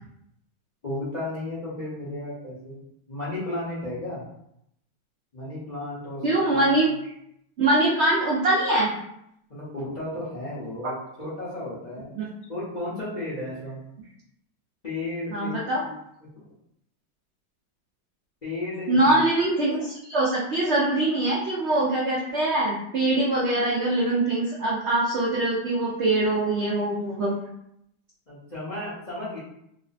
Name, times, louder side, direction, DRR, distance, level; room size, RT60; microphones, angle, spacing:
voice 1, 0.8-2.8 3.1-4.2 5.3-6.2 6.5-6.8 9.5-12.1 12.5-13.8 14.8-15.9 18.4-19.2 28.3-29.4, left 1 dB, 40° left, -8 dB, 0.6 m, -33 dB
voice 2, 6.2-6.9 7.6-8.9 10.8-10.9 12.2-12.3 15.3-15.9 18.9-27.3, right 2 dB, 75° right, -5 dB, 0.6 m, -23 dB
3.0 x 2.1 x 4.0 m, 0.77 s
omnidirectional pair, 1.9 m